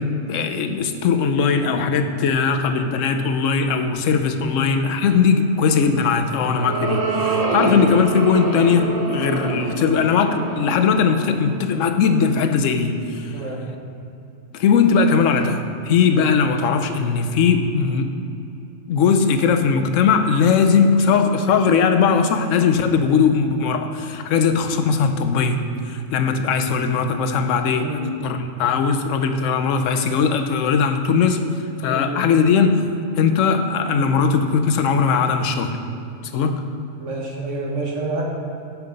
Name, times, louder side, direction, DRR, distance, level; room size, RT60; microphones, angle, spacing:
voice 1, 0.0-13.4 14.5-18.2 18.9-31.4 31.8-32.8 33.2-35.8 36.3-36.6, left 5 dB, 75° left, 7 dB, 1.0 m, -19 dB
sound 1, 6.0-12.5, right 3 dB, 35° right, 0.7 m, -26 dB
voice 2, 13.3-13.7 27.8-28.1 31.9-32.2 37.0-38.3, right 2 dB, 65° right, -1 dB, 1.6 m, -28 dB
9.4 x 5.9 x 5.2 m, 2.8 s
omnidirectional pair, 1.4 m